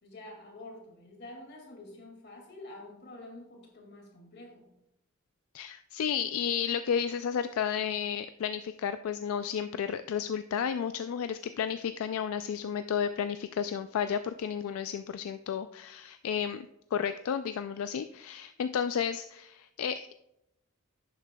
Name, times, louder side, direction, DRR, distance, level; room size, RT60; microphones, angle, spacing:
voice 1, 0.0-4.7, left 1 dB, 50° left, 1 dB, 2.2 m, -48 dB
voice 2, 5.5-20.1, left 7 dB, 75° left, 10 dB, 0.3 m, -32 dB
11.0 x 7.9 x 2.2 m, 0.85 s
head